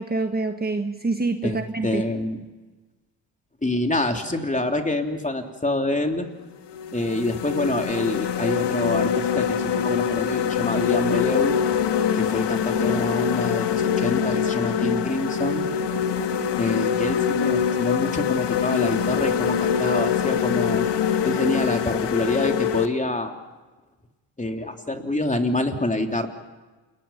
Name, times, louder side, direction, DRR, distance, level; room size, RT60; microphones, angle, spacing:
voice 1, 0.0-2.0, right 3 dB, 20° right, 6 dB, 1.5 m, -26 dB
voice 2, 1.4-2.5 3.6-6.3 6.9-11.6 12.1-15.7 16.2-20.9 21.2-23.3 24.4-26.3, left 1 dB, 15° left, 4 dB, 3.3 m, -26 dB
sound 1, 5.9-6.1 6.7-22.9, left 8 dB, 60° left, 1.6 m, -24 dB
29.0 x 21.5 x 5.8 m, 1.2 s
supercardioid pair, 55°, 47 cm